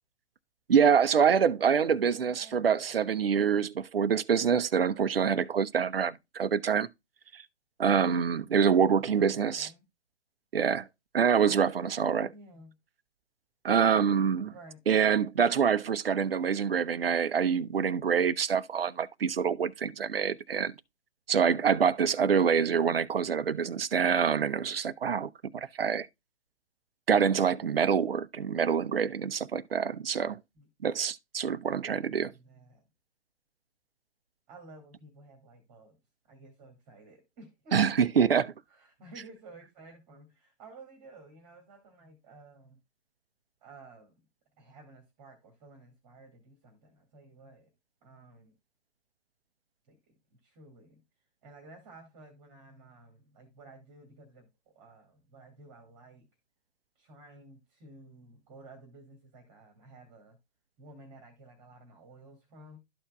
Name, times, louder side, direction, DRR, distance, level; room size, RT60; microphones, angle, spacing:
voice 1, 0.7-6.9 7.3-7.4 7.8-9.7 10.5-10.9 11.1-12.3 13.6-14.5 14.9-20.7 21.3-26.1 27.1-30.4 30.8-32.3 37.7-38.5, right 7 dB, 60° right, 0.6 m, -26 dB
voice 2, 1.8-2.9 9.0-9.9 12.3-12.7 14.5-14.8 30.6-30.7 31.9-32.8 34.5-36.0 36.3-38.1 38.7-42.8 43.6-44.2 44.6-47.7 48.0-48.6 49.9-51.0 51.4-56.3 57.0-60.4 60.8-62.8, right 2 dB, 20° right, 1.8 m, -53 dB
12.5 x 4.4 x 2.2 m
figure-of-eight pair, 130°, 33 cm